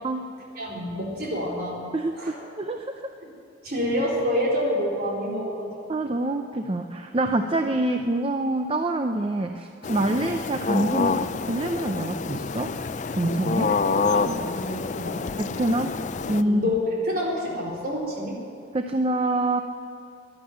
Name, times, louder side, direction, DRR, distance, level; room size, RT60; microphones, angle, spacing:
voice 1, 0.6-1.9 2.2-2.4 3.6-5.7 13.7-15.3 16.4-16.8 17.0-18.4, equal, 50° right, -3 dB, 3.7 m, -28 dB
voice 2, 1.9-3.0 5.9-12.7 13.1-13.7 15.4-16.0 16.3-16.6 18.7-19.6, right 1 dB, 30° right, 6 dB, 0.5 m, -26 dB
sound 1, 9.8-16.4, left 4 dB, 40° left, 0.4 m, -27 dB
11.5 x 11.5 x 8.6 m, 2.6 s
head